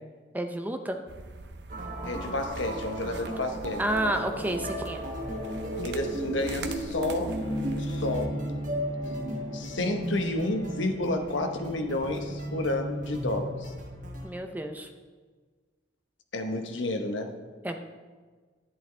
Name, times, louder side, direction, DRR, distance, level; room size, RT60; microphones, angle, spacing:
voice 1, 0.3-1.0 3.8-5.0 14.2-14.9 17.6-17.8, right 1 dB, 10° right, 5 dB, 0.6 m, -30 dB
sound 1, 1.1-8.3, right 1 dB, 65° right, 0.7 m, -42 dB
sound 2, 1.7-14.3, right 1 dB, 45° right, 1.2 m, -35 dB
voice 2, 2.0-3.8 5.8-7.4 7.8-8.3 9.5-13.7 16.3-17.3, left 2 dB, 85° left, 5 dB, 1.1 m, -31 dB
Bowed string instrument, 7.4-14.0, right 1 dB, 35° left, 2.0 m, -38 dB
10.5 x 10.5 x 3.4 m, 1.5 s
head